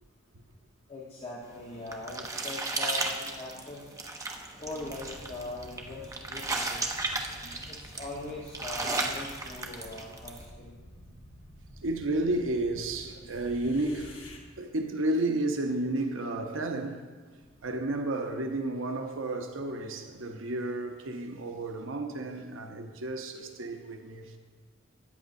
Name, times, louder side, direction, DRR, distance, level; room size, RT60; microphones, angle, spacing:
voice 1, 0.9-3.9 4.6-7.0 7.7-10.8, left 2 dB, 30° left, 1.1 m, -41 dB
sound 1, 1.5-10.4, right 2 dB, 15° right, 0.6 m, -35 dB
sound 2, 4.6-14.4, equal, 70° left, 1.4 m, -50 dB
voice 2, 7.1-7.6 11.8-14.2 14.6-17.1 17.6-24.4, right 2 dB, 90° right, 0.8 m, -32 dB
13.5 x 8.8 x 2.6 m
head